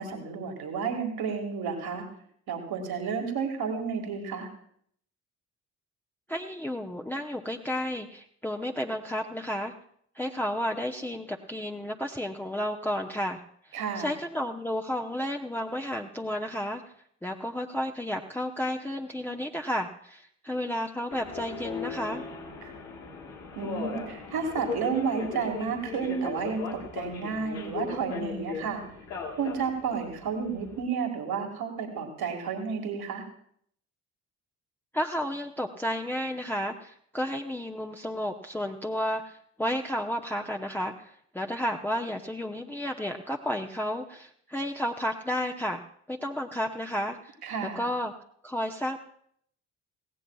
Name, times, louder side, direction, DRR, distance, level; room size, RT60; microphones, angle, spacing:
voice 1, 0.0-2.1 2.5-4.5 13.7-14.1 22.6-22.7 23.5-28.8 29.4-33.2 47.4-47.9, right 6 dB, 60° right, 3 dB, 2.1 m, -31 dB
voice 2, 6.3-9.7 10.1-13.4 13.6-16.8 17.2-22.2 34.9-45.8 46.1-47.4 47.7-48.1 48.4-49.0, equal, 5° left, 1 dB, 0.9 m, -32 dB
Subway metro underground, 21.1-30.8, left 5 dB, 90° left, 1.6 m, -38 dB
18.5 x 16.0 x 2.3 m, 0.66 s
hypercardioid pair, 45°, 41 cm